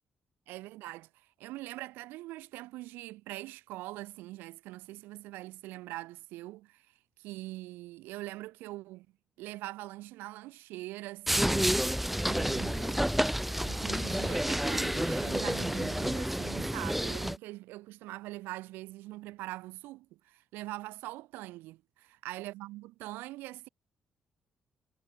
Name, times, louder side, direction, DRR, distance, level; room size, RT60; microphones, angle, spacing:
voice 1, 0.5-9.1 9.4-11.7 12.2-13.1 13.6-23.7, right 18 dB, 65° right, 4.3 m, -43 dB
sound 1, 11.3-17.4, equal, 5° right, 0.7 m, -30 dB
figure-of-eight pair, 40°, 4 cm